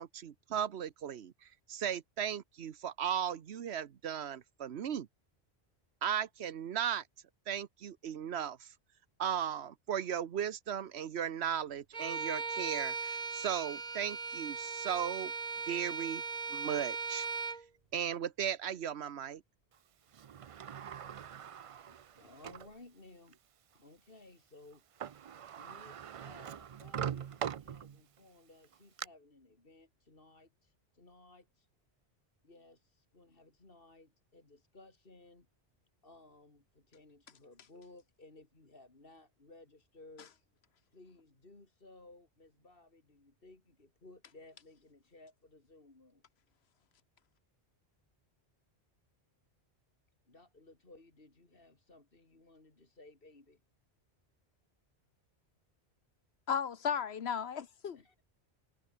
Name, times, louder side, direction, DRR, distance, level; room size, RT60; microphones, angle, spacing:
voice 1, 0.0-1.3 1.7-5.1 6.0-7.0 7.5-8.7 9.2-15.3 15.7-16.2 16.5-17.3 17.9-19.4, right 9 dB, 75° right, 1.2 m, -36 dB
Bowed string instrument, 11.9-17.6, right 4 dB, 40° right, 1.3 m, -38 dB
Sliding door, 20.1-22.7 23.3-23.4 24.7-24.8 25.0-28.2 28.6-29.1, right 8 dB, 60° right, 0.3 m, -42 dB
voice 2, 21.9-23.4 23.7-24.8 25.6-31.7 32.4-35.5 36.0-40.5 40.9-46.3 50.3-53.6 57.9-58.2, left 2 dB, 55° left, 3.4 m, -58 dB
voice 3, 56.5-58.2, left 7 dB, 75° left, 1.3 m, -35 dB
omnidirectional pair, 1.1 m